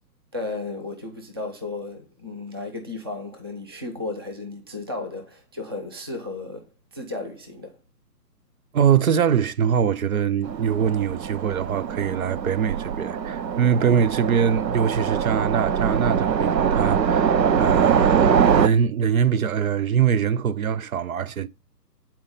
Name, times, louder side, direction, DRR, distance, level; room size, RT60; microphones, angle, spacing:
voice 1, 0.3-7.7, left 2 dB, 15° right, 0.5 m, -34 dB
voice 2, 8.7-21.5, right 8 dB, 60° right, 0.7 m, -23 dB
Train, 10.5-18.7, right 7 dB, 85° right, 0.9 m, -22 dB
9.4 x 4.4 x 5.1 m
hypercardioid pair, 150°, 49 cm